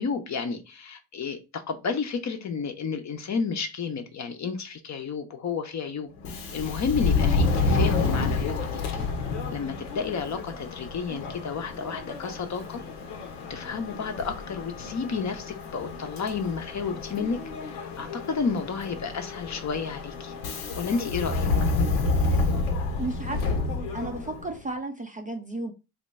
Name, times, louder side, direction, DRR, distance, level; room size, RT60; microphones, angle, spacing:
voice 1, 0.0-6.1 6.5-8.8 9.5-12.8 13.5-20.3 20.8-21.5, left 5 dB, 35° left, 0.7 m, -31 dB
Subway metro underground, 6.2-24.5, left 3 dB, 80° left, 0.9 m, -29 dB
voice 2, 23.0-23.6 23.9-25.7, right 2 dB, 15° right, 0.5 m, -33 dB
2.8 x 2.2 x 4.0 m
hypercardioid pair, 60°, 50 cm